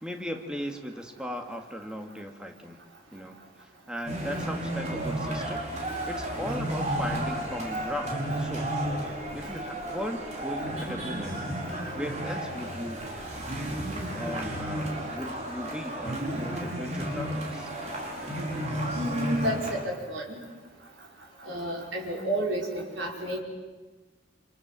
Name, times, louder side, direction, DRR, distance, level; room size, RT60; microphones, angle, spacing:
voice 1, 0.0-2.8 3.1-5.6 6.1-8.7 9.3-13.0 14.1-17.7, equal, 5° right, 4 dB, 2.0 m, -37 dB
sound 1, 4.0-19.8, right 1 dB, 35° right, 5.0 m, -32 dB
voice 2, 18.9-20.4 21.4-23.4, right 1 dB, 90° right, -2 dB, 5.4 m, -30 dB
28.5 x 27.0 x 7.6 m, 1.2 s
head